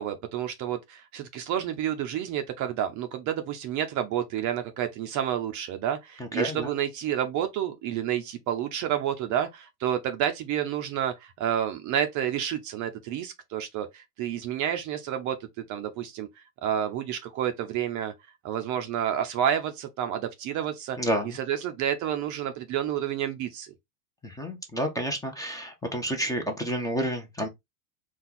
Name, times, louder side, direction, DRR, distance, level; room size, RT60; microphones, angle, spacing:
voice 1, 0.0-18.1 18.4-21.0 21.2-23.7, right 10 dB, 40° right, 0.6 m, -30 dB
voice 2, 6.2-6.7 21.0-21.3 24.2-27.5, equal, 5° left, 0.7 m, -30 dB
4.3 x 2.4 x 3.7 m
supercardioid pair, 130°, 49 cm